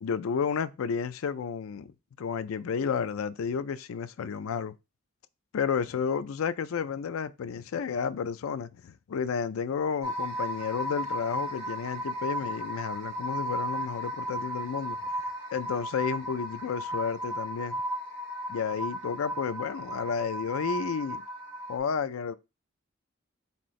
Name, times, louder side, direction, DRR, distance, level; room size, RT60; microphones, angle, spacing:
voice 1, 0.0-4.7 5.5-15.1 15.5-17.8 18.5-21.2 21.7-22.4, left 6 dB, 85° left, 0.4 m, -32 dB
sound 1, 10.0-21.8, equal, 75° right, 2.1 m, -35 dB
4.3 x 3.6 x 3.1 m
head